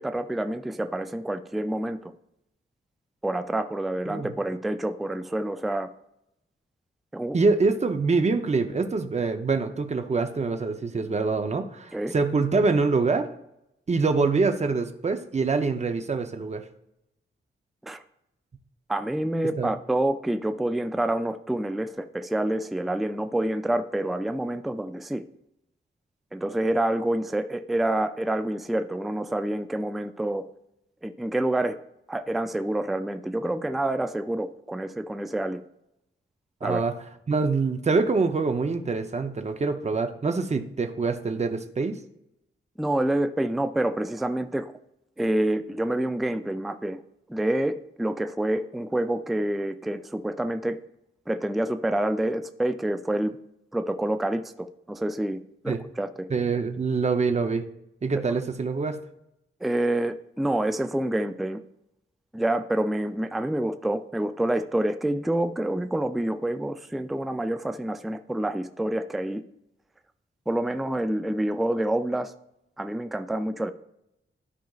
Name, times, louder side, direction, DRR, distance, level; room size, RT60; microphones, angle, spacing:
voice 1, 0.0-2.1 3.2-5.9 7.1-7.4 11.9-12.1 17.8-18.0 18.9-25.2 26.3-30.5 31.0-31.8 32.1-35.6 36.6-36.8 42.8-44.7 45.2-47.0 47.3-50.8 51.3-53.4 53.7-56.3 59.6-61.6 62.3-69.4 70.5-72.3 72.8-73.7, right 1 dB, ahead, 9 dB, 0.3 m, -27 dB
voice 2, 7.3-13.3 13.9-16.6 19.6-19.7 36.6-36.9 37.3-42.0 55.7-55.8 56.3-57.6 58.0-59.0, right 4 dB, 30° right, 7 dB, 0.7 m, -25 dB
12.5 x 5.0 x 2.4 m, 0.81 s
wide cardioid pair, 120°, 21 cm